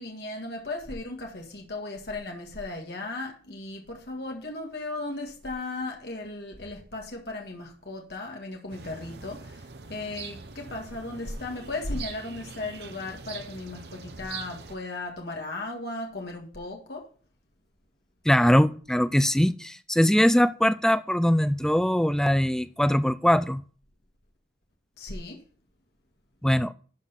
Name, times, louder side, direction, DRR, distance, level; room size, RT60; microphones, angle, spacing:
voice 1, 0.0-17.1 25.0-25.4, left 2 dB, 65° left, 1.8 m, -36 dB
sound 1, 8.7-14.8, right 5 dB, 65° right, 0.9 m, -43 dB
voice 2, 18.3-23.6 26.4-26.7, equal, 5° left, 0.3 m, -22 dB
12.5 x 4.8 x 5.5 m
head